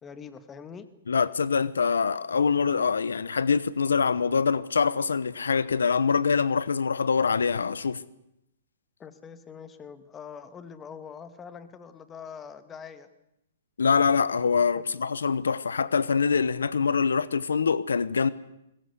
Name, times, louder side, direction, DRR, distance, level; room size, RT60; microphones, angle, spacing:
voice 1, 0.0-0.9 9.0-13.1 14.8-14.9, left 6 dB, 15° left, 1.8 m, -43 dB
voice 2, 1.1-8.0 13.8-18.3, left 5 dB, 90° left, 1.0 m, -24 dB
21.5 x 21.0 x 8.2 m
hypercardioid pair, 135°, 0 cm